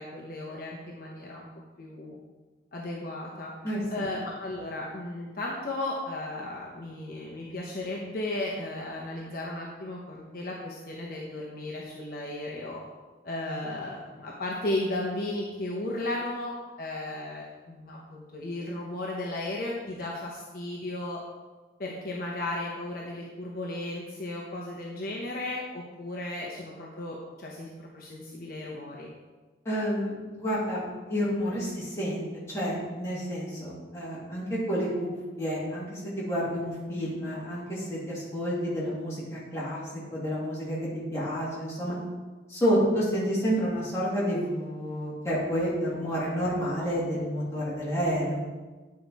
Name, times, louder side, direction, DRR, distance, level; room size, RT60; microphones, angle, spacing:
voice 1, 0.0-1.5 1.8-2.2 2.7-3.5 3.9-12.8 13.2-21.2 21.8-29.1 36.6-36.7, left 2 dB, 50° left, -3 dB, 0.8 m, -35 dB
voice 2, 3.6-4.1 29.6-30.8 31.1-42.0 42.5-48.4, equal, 15° left, -8 dB, 2.2 m, -30 dB
8.5 x 4.7 x 4.0 m, 1.3 s
head